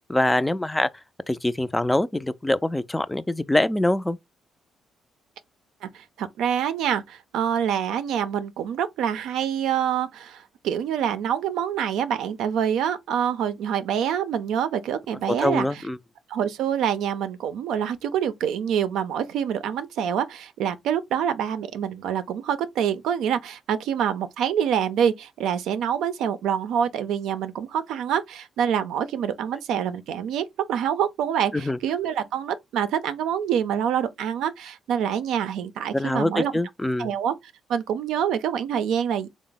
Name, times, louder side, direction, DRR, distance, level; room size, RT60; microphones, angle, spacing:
voice 1, 0.1-0.9 1.3-4.2 15.3-16.0 31.5-31.8 35.9-37.1, left 1 dB, 10° left, 0.3 m, -24 dB
voice 2, 5.8-15.7 16.3-36.5 37.0-37.4 37.7-39.3, right 9 dB, 85° right, 0.4 m, -26 dB
3.4 x 2.0 x 3.8 m
cardioid pair, 90°, 0 cm